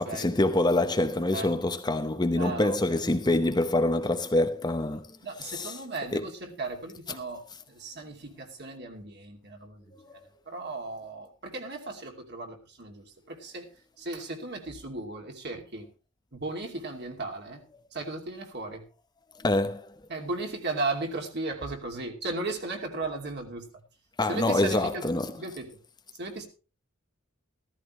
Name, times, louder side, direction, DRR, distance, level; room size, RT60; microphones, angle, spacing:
voice 1, 0.0-5.2 5.4-5.8 6.1-6.2 9.9-10.3 19.4-19.9 24.2-25.3, left 2 dB, 20° left, 0.8 m, -26 dB
voice 2, 2.4-2.8 3.2-3.5 5.2-9.9 10.5-13.7 14.0-15.9 16.3-17.6 17.9-18.8 20.1-23.6 24.3-25.0 25.4-25.7 26.2-26.5, right 2 dB, 50° right, 2.7 m, -36 dB
14.5 x 14.5 x 3.2 m
head